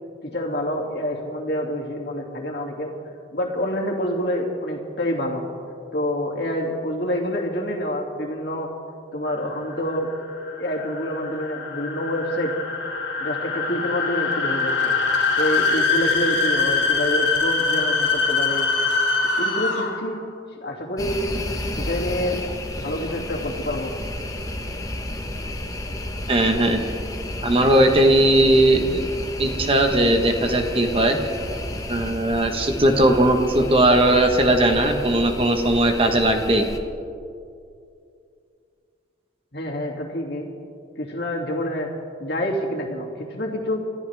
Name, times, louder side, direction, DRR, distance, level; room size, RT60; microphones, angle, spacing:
voice 1, 0.2-2.9 3.3-5.4 5.9-8.7 9.1-10.1 10.6-12.5 13.2-14.9 15.4-18.7 19.4-20.2 20.6-21.2 21.8-22.4 22.8-23.9 39.5-40.5 41.0-41.9 42.2-43.8, equal, 60° left, -1 dB, 2.5 m, -27 dB
sound 1, 9.5-20.1, left 4 dB, 75° left, 2.9 m, -23 dB
sound 2, 21.0-36.8, left 1 dB, 20° left, 1.1 m, -32 dB
voice 2, 26.3-26.8 27.4-29.0 29.4-31.2 31.9-36.7, right 1 dB, 30° right, 5 dB, 1.2 m, -18 dB
28.0 x 14.0 x 3.5 m, 2.4 s
head